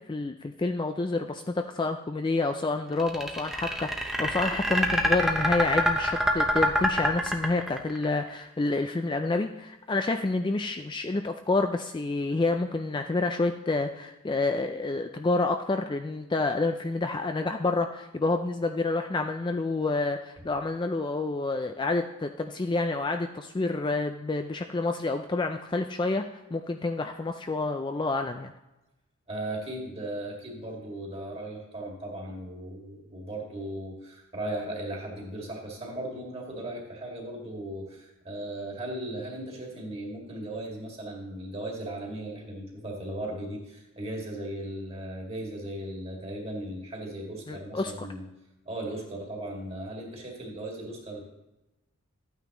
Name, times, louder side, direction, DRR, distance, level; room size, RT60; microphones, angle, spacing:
voice 1, 0.1-26.2 26.5-28.5 47.5-48.1, left 3 dB, 20° left, 6 dB, 0.3 m, -28 dB
sound 1, 3.0-8.0, equal, ahead, 0.8 m, -25 dB
voice 2, 29.3-48.2 48.6-51.2, right 1 dB, 25° right, -1 dB, 2.1 m, -37 dB
13.0 x 9.2 x 3.0 m, 0.98 s
head